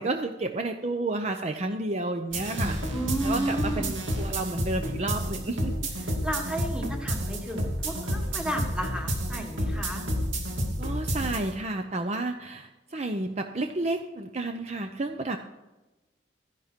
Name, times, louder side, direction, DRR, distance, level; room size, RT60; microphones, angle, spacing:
voice 1, 0.0-2.8 3.2-5.7 10.8-15.4, right 2 dB, 35° right, 6 dB, 0.6 m, -31 dB
sound 1, 2.3-11.5, equal, 75° right, 2.6 m, -30 dB
voice 2, 2.9-3.9 6.0-10.0, right 1 dB, 5° right, 2 dB, 1.6 m, -33 dB
13.5 x 10.5 x 4.4 m, 1.1 s
head